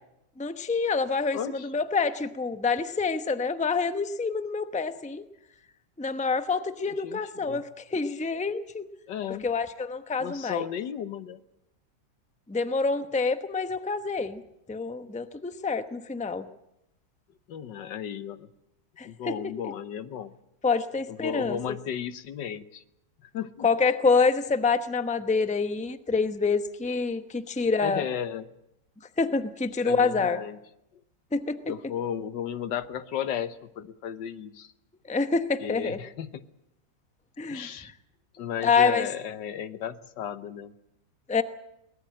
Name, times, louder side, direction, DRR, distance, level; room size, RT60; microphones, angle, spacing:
voice 1, 0.4-5.2 6.0-8.9 9.3-10.6 12.5-14.4 14.7-16.5 19.0-19.3 20.6-21.8 23.6-28.0 29.2-30.4 31.3-31.6 35.1-36.0 37.4-37.9 38.6-39.1 41.3-41.4, left 4 dB, 5° left, 10 dB, 0.7 m, -27 dB
voice 2, 1.3-1.7 7.0-7.6 9.1-9.4 10.2-11.4 17.5-18.5 19.0-20.3 21.1-22.8 23.2-23.7 27.8-28.5 29.8-30.6 31.6-34.7 35.6-36.4 37.5-37.9 38.3-40.7, left 9 dB, 85° left, 12 dB, 1.7 m, -34 dB
23.0 x 19.5 x 7.8 m, 0.84 s
omnidirectional pair, 1.9 m